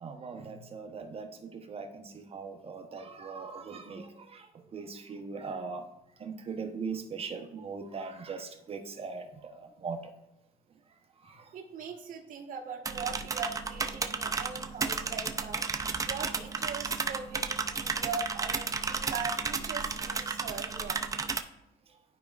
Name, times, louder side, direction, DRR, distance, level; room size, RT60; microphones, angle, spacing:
voice 1, 0.0-4.5 4.7-5.8 6.2-9.2 9.6-10.1 11.3-11.4, right 5 dB, 35° right, 5 dB, 0.8 m, -40 dB
voice 2, 11.5-15.6 16.0-21.0, right 5 dB, 55° right, 1 dB, 1.1 m, -40 dB
sound 1, 12.9-21.4, right 4 dB, 20° right, 0.4 m, -33 dB
11.5 x 5.0 x 2.4 m, 0.92 s
cardioid pair, 110°, 17 cm